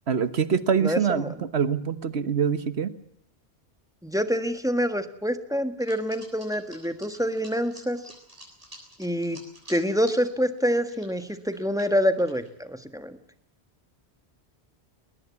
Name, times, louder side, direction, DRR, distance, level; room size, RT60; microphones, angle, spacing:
voice 1, 0.1-2.9, right 6 dB, 75° right, 13 dB, 1.5 m, -25 dB
voice 2, 0.8-1.3 4.0-8.0 9.0-9.4 9.7-13.2, equal, 5° right, 9 dB, 1.5 m, -26 dB
sound 1, 5.8-10.2 10.6-12.5, equal, 35° right, 7.3 m, -48 dB
21.5 x 20.0 x 8.4 m, 0.72 s
omnidirectional pair, 1.1 m